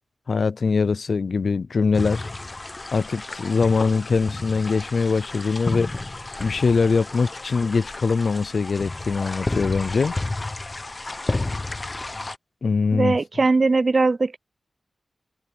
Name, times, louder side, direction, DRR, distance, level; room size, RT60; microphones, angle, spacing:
voice 1, 0.3-2.3 2.9-5.9 6.4-10.1 12.6-13.2, left 4 dB, 60° left, 0.4 m, -22 dB
sound 1, 1.9-12.4, left 2 dB, 30° left, 0.8 m, -32 dB
voice 2, 12.9-14.4, right 3 dB, 45° right, 0.4 m, -20 dB
wide cardioid pair, 110°, 0 cm